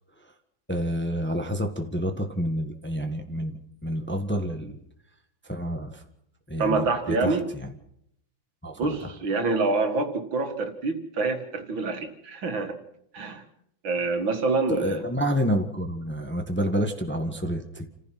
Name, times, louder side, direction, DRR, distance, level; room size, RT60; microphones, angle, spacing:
voice 1, 0.7-3.5 3.8-4.8 5.4-6.0 6.5-7.7 8.6-9.0 14.7-17.9, equal, 5° left, 4 dB, 1.3 m, -28 dB
voice 2, 6.6-7.5 8.8-12.8 13.1-13.4 13.8-15.0, right 3 dB, 75° right, 5 dB, 2.6 m, -26 dB
29.0 x 15.0 x 6.0 m, 0.75 s
omnidirectional pair, 2.1 m